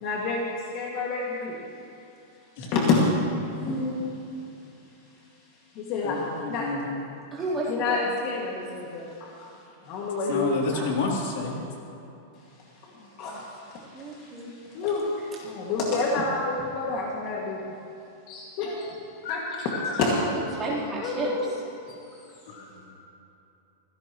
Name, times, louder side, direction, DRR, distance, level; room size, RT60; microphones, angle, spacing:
voice 1, 0.0-1.6 2.7-3.1 3.5-4.0 5.7-6.8 7.7-9.5 9.8-10.7 12.8-17.6 18.3-19.0 19.3-20.2 20.9-21.5 21.9-22.0, left 3 dB, 35° left, -3 dB, 2.0 m, -29 dB
voice 2, 6.0-7.0 10.3-11.6 19.2-20.0 22.5-23.1, left 4 dB, 55° left, -2 dB, 3.1 m, -31 dB
voice 3, 7.3-8.1 10.7-10.9 13.9-14.5 20.3-21.3, right 2 dB, 15° right, -7 dB, 3.6 m, -32 dB
25.5 x 17.0 x 3.1 m, 2.8 s
supercardioid pair, 170°, 0 cm